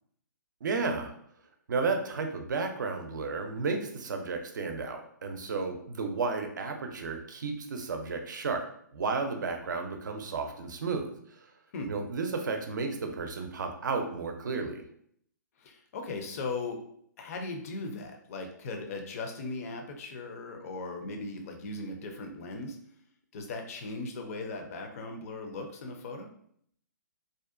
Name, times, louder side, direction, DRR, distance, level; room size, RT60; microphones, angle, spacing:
voice 1, 0.6-1.1 1.7-8.6 8.9-11.1 11.9-14.8, right 4 dB, 70° right, 5 dB, 0.5 m, -32 dB
voice 2, 15.6-16.8 17.2-22.8 23.3-26.3, left 3 dB, 45° left, 4 dB, 0.5 m, -38 dB
2.6 x 2.1 x 2.4 m, 0.66 s
hypercardioid pair, 135°, 11 cm